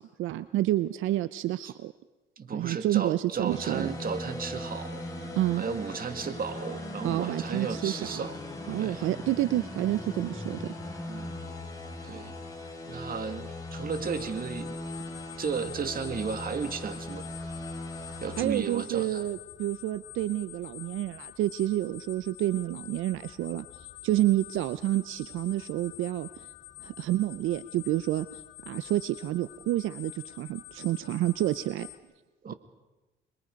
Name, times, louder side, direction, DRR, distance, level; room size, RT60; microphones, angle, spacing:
voice 1, 0.0-1.9 2.5-3.9 5.4-5.6 7.0-8.3 8.7-10.7 18.4-26.5 26.8-31.9, right 14 dB, 85° right, 14 dB, 0.6 m, -29 dB
voice 2, 2.4-5.0 5.6-8.4 8.8-9.0 11.1-11.5 12.0-12.4 12.9-14.8 15.4-17.3 18.2-19.2 32.4-32.5, right 6 dB, 45° right, 9 dB, 2.0 m, -34 dB
sound 1, 3.5-18.5, left 1 dB, 20° left, 6.2 m, -39 dB
sound 2, 13.9-32.0, left 16 dB, 70° left, 2.5 m, -47 dB
26.5 x 22.0 x 5.3 m, 1.1 s
cardioid pair, 90°, 20 cm